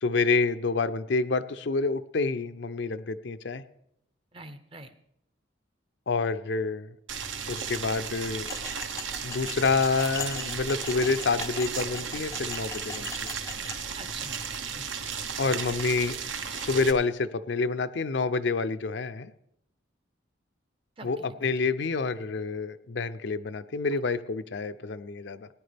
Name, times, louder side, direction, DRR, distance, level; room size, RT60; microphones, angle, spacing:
voice 1, 0.0-3.6 6.1-6.9 7.5-8.5 9.2-13.3 15.4-16.2 16.5-19.3 21.0-25.5, left 4 dB, 65° left, 11 dB, 0.5 m, -28 dB
voice 2, 4.3-4.9 14.0-14.4 14.7-14.9 21.0-21.7 23.9-24.0, right 2 dB, 30° right, 10 dB, 0.7 m, -45 dB
Boiling, 7.1-16.9, right 6 dB, 80° right, 1.1 m, -35 dB
sound 1, 8.5-13.8, left 5 dB, 15° left, 0.4 m, -41 dB
18.5 x 10.0 x 3.4 m, 0.77 s
head